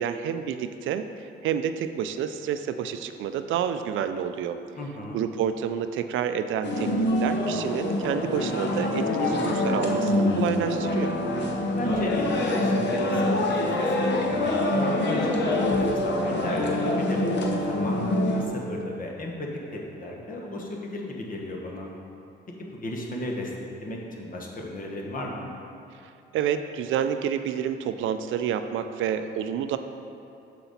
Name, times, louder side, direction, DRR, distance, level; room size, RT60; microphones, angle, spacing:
voice 1, 0.0-4.6 5.1-11.1 26.3-29.8, right 8 dB, 80° right, 9 dB, 0.4 m, -29 dB
voice 2, 4.8-5.2 11.8-17.2 17.7-21.9 22.6-23.5 23.8-25.5, left 1 dB, 45° left, 0 dB, 1.2 m, -35 dB
sound 1, 6.6-18.5, left 1 dB, 65° left, 0.9 m, -25 dB
6.7 x 5.9 x 4.1 m, 2.6 s
cardioid pair, 90°, 20 cm